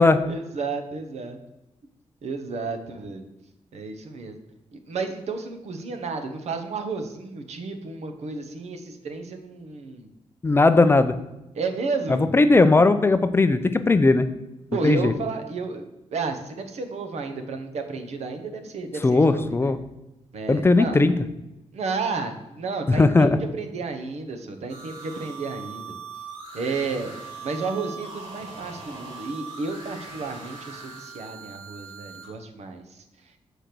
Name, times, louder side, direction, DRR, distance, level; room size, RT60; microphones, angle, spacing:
voice 1, 0.0-1.4 2.2-3.3 3.7-4.4 4.7-10.1 11.5-12.3 14.7-19.7 20.3-21.0 21.7-23.3 23.6-26.0 26.5-27.1 27.4-33.0, right 4 dB, 75° right, 6 dB, 1.0 m, -32 dB
voice 2, 10.4-11.1 12.1-14.3 14.8-15.1 19.0-19.8 20.5-21.1 22.9-23.4, left 3 dB, 20° left, 11 dB, 0.4 m, -18 dB
sound 1, 24.7-32.3, right 5 dB, 50° right, 2.8 m, -40 dB
6.7 x 5.0 x 5.9 m, 0.94 s
wide cardioid pair, 135°, 11 cm